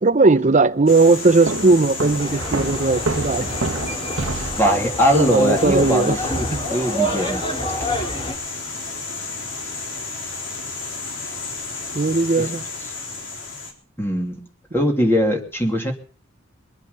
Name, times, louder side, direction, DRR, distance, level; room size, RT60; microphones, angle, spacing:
voice 1, 0.0-3.5 5.1-6.1 6.5-6.6 11.9-12.6, right 3 dB, 40° right, 0.7 m, -17 dB
sound 1, 0.9-13.7, left 3 dB, 85° left, 4.0 m, -32 dB
Walk footsteps, 1.5-4.8, right 3 dB, 90° right, 1.4 m, -28 dB
sound 2, 2.2-8.3, equal, 30° left, 3.9 m, -28 dB
voice 2, 4.6-7.5 12.4-12.5 14.0-14.4 14.7-15.9, equal, 10° left, 2.8 m, -21 dB
23.0 x 8.2 x 7.0 m
head